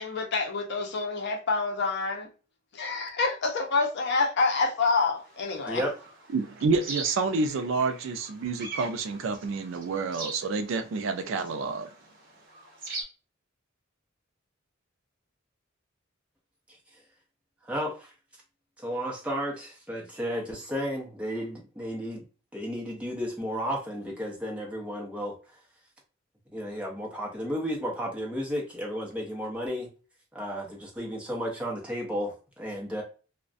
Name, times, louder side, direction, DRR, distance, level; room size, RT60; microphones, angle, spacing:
voice 1, 0.0-2.3 2.7-5.8, left 4 dB, 60° left, 0.6 m, -27 dB
sound 1, 5.2-13.0, right 3 dB, 45° right, 0.9 m, -42 dB
voice 2, 6.3-11.9, right 4 dB, 70° right, 0.4 m, -28 dB
voice 3, 17.7-18.1 18.8-22.2 22.5-25.3 26.5-29.9 30.3-33.0, equal, 5° right, 0.7 m, -33 dB
2.4 x 2.1 x 2.4 m
head